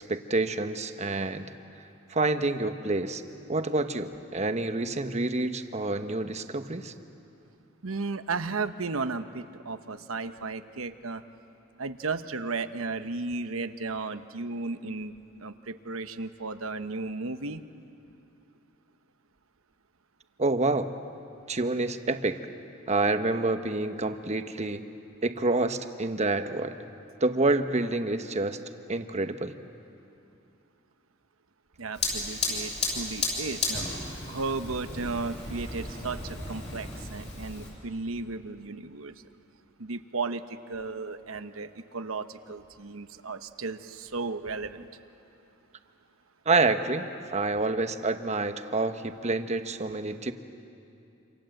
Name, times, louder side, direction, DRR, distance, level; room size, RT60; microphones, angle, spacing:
voice 1, 0.0-1.5 2.1-3.2 3.5-6.9 20.4-20.9 21.5-22.4 22.9-24.8 25.2-26.8 27.2-28.6 28.9-29.6 46.4-47.1 47.3-50.3, right 2 dB, 35° right, 8 dB, 1.1 m, -28 dB
voice 2, 7.8-11.2 11.8-15.1 15.4-17.6 31.8-33.9 34.3-39.1 39.8-44.9, right 3 dB, 90° right, 9 dB, 1.1 m, -34 dB
Fire, 31.9-37.7, left 3 dB, 35° left, 7.3 m, -33 dB
27.5 x 27.0 x 7.8 m, 2.7 s
head